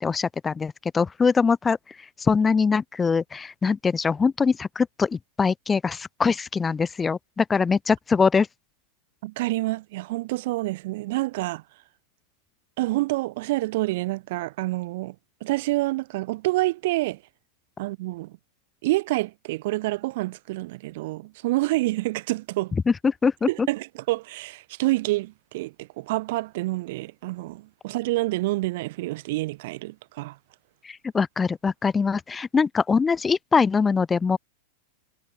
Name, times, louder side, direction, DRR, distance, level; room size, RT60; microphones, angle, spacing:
voice 1, 0.0-1.8 2.2-8.5 22.9-23.7 30.8-34.4, left 5 dB, 15° left, 0.3 m, -23 dB
voice 2, 9.2-11.6 12.8-15.1 15.4-17.2 17.8-18.3 18.8-22.7 23.5-30.4, right 19 dB, 50° right, 0.7 m, -27 dB
figure-of-eight pair, 90°, 0 cm